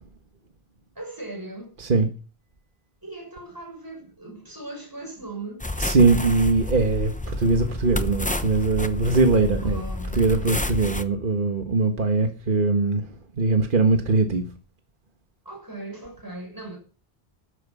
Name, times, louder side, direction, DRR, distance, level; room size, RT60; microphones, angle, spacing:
voice 1, 0.9-1.8 3.0-5.6 9.6-10.2 15.4-16.8, right 2 dB, 20° right, 6.7 m, -38 dB
sound 1, 5.6-11.0, left 1 dB, 10° left, 0.7 m, -29 dB
voice 2, 5.8-9.8 10.1-13.1 13.4-14.5, right 3 dB, 55° right, 1.7 m, -21 dB
12.5 x 9.9 x 7.3 m
omnidirectional pair, 1.0 m